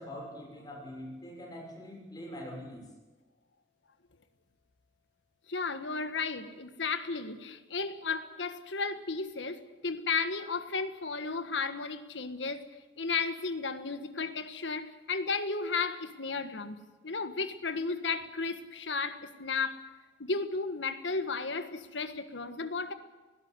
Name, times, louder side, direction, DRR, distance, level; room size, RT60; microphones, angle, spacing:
voice 1, 0.0-2.8, left 1 dB, 20° left, 0 dB, 6.2 m, -43 dB
voice 2, 5.5-12.6 13.0-16.8 17.0-19.8 20.2-22.9, left 4 dB, 85° left, 10 dB, 1.6 m, -34 dB
19.0 x 16.5 x 9.7 m, 1.2 s
head